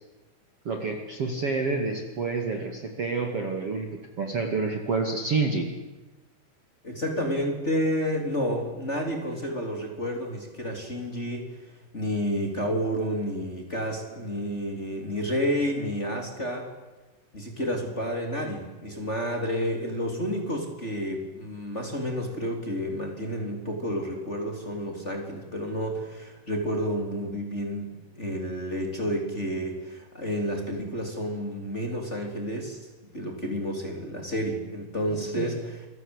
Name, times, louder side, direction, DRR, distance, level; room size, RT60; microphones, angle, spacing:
voice 1, 0.6-3.9 4.2-5.7 35.1-35.6, right 4 dB, 40° right, 3 dB, 2.8 m, -28 dB
voice 2, 6.8-11.5 11.9-16.7 17.3-32.8 33.1-35.9, equal, 15° left, 2 dB, 3.6 m, -30 dB
28.0 x 23.5 x 8.2 m, 1.1 s
omnidirectional pair, 4.9 m